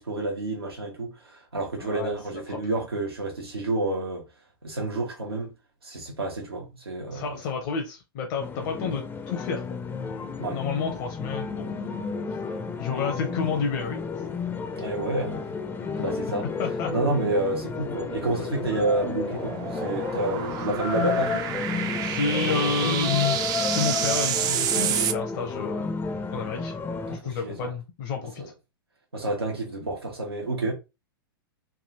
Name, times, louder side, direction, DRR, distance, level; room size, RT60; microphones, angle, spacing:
voice 1, 0.0-4.3 4.6-5.5 5.8-7.4 8.6-8.7 10.4-10.6 14.7-15.5 16.0-16.5 16.9-21.5 27.1-27.7 28.2-28.5 29.1-30.7, right 2 dB, 90° right, 1.0 m, -29 dB
voice 2, 1.8-2.6 7.1-9.8 10.5-11.9 12.8-14.0 15.9-16.0 16.6-16.9 22.0-23.4 23.7-25.9 26.3-26.7 27.1-28.4, left 5 dB, 50° left, 0.8 m, -30 dB
sound 1, 8.4-27.2, left 5 dB, 15° left, 0.5 m, -32 dB
sound 2, 17.6-25.1, right 9 dB, 30° right, 0.4 m, -30 dB
3.4 x 2.3 x 2.8 m
hypercardioid pair, 100°, 12 cm